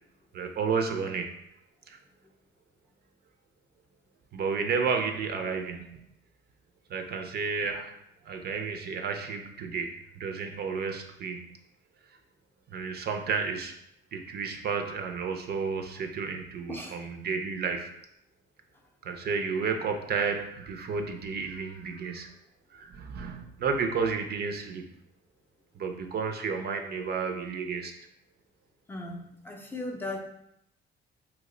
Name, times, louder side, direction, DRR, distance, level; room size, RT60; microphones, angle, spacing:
voice 1, 0.3-1.3 1.9-2.0 4.3-6.1 6.9-7.9 8.2-11.6 12.7-13.7 14.1-17.9 19.0-22.3 22.7-24.8 25.8-27.9, right 5 dB, 55° right, 5 dB, 0.4 m, -32 dB
voice 2, 16.7-17.1 28.9-30.2, left 2 dB, 10° left, 0 dB, 0.5 m, -37 dB
2.9 x 2.0 x 3.7 m, 0.80 s
cardioid pair, 90°, 20 cm